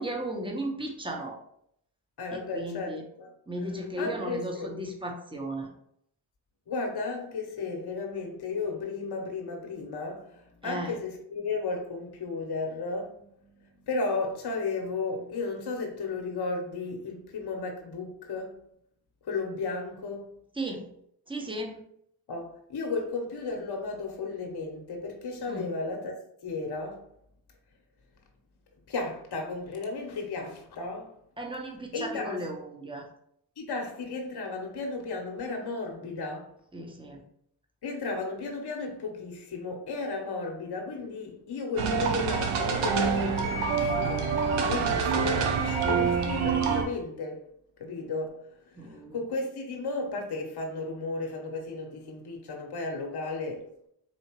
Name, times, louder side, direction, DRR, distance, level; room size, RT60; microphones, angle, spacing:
voice 1, 0.0-1.4 2.3-3.0 3.5-5.7 10.6-10.9 20.6-20.9 21.3-21.8 25.5-25.7 31.4-33.1 36.7-37.2 48.8-49.2, right 1 dB, 10° right, 1.0 m, -35 dB
voice 2, 2.2-3.3 4.0-4.7 6.7-18.6 19.2-20.3 22.3-26.2 26.4-27.0 28.9-31.1 31.9-32.5 33.6-36.5 37.8-47.4 47.8-53.7, left 3 dB, 50° left, 1.0 m, -34 dB
sound 1, 41.8-46.8, right 6 dB, 80° right, 0.7 m, -26 dB
4.4 x 2.8 x 3.0 m
supercardioid pair, 45°, 49 cm